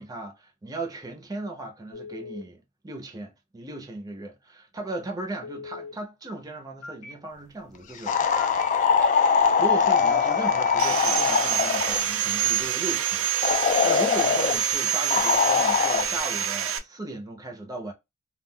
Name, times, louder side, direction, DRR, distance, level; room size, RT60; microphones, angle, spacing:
voice 1, 0.0-8.2 9.1-17.9, right 2 dB, 20° right, 0.6 m, -37 dB
Telephone, 1.9-2.4 5.4-5.9 6.8-7.1 8.4-8.7 9.9-11.0, left 2 dB, 75° left, 0.8 m, -40 dB
sound 1, 8.1-12.0 13.4-14.6 15.1-16.1, left 6 dB, 35° left, 0.3 m, -22 dB
Sawing, 10.8-16.8, right 9 dB, 65° right, 0.4 m, -26 dB
2.3 x 2.1 x 3.6 m
head